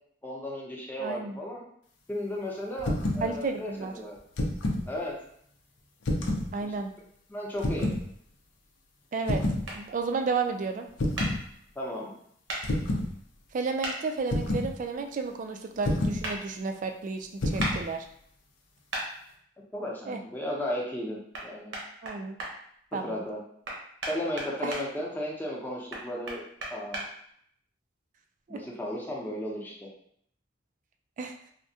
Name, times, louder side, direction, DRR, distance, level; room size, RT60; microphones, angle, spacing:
voice 1, 0.2-1.6 2.1-4.2 4.9-5.1 6.6-6.7 7.3-7.9 11.8-12.1 19.7-21.7 23.0-23.4 24.1-26.4 26.7-27.0 28.5-29.9, left 1 dB, 10° left, -3 dB, 0.6 m, -34 dB
voice 2, 1.0-1.4 3.2-3.9 6.5-6.9 9.1-9.4 9.7-10.9 13.5-18.0 20.1-20.2 22.0-22.4 22.9-23.2 24.6-24.8 28.5-28.6 31.2-31.3, right 4 dB, 45° right, 6 dB, 0.3 m, -32 dB
sound 1, 2.8-3.3 4.2-4.9 6.0-6.5 7.6-8.0 9.3-9.7 11.0-11.4 12.6-13.1 14.3-14.7 15.8-16.2 17.4-17.8, left 1 dB, 85° left, 0.5 m, -28 dB
sound 2, 9.6-9.8 11.2-11.3 12.5-12.6 13.8-14.0 16.2-16.4 17.6-17.7 18.9-19.1 21.3-21.4 21.7-22.5 23.6-24.8 25.9-27.0, right 1 dB, 80° right, 0.8 m, -33 dB
3.4 x 2.1 x 2.7 m, 0.67 s
head